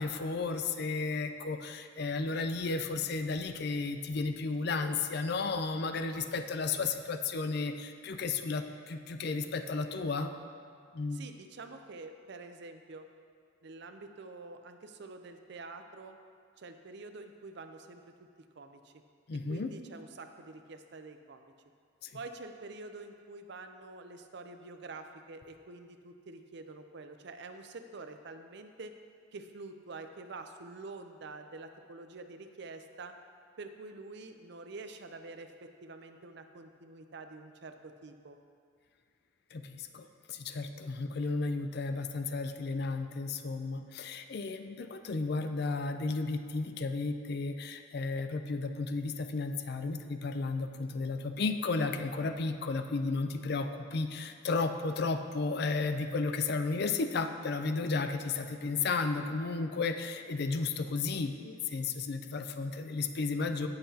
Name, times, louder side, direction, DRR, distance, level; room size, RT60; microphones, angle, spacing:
voice 1, 0.0-10.3 10.9-11.2 19.3-19.7 22.0-22.2 39.5-63.7, left 3 dB, 55° left, 7 dB, 0.5 m, -33 dB
voice 2, 11.1-13.1 13.6-16.2 16.6-18.3 18.6-18.9 19.3-21.5 22.1-29.0 29.3-33.1 33.6-38.4, right 3 dB, 60° right, 7 dB, 0.5 m, -47 dB
16.5 x 5.8 x 2.8 m, 2.2 s
head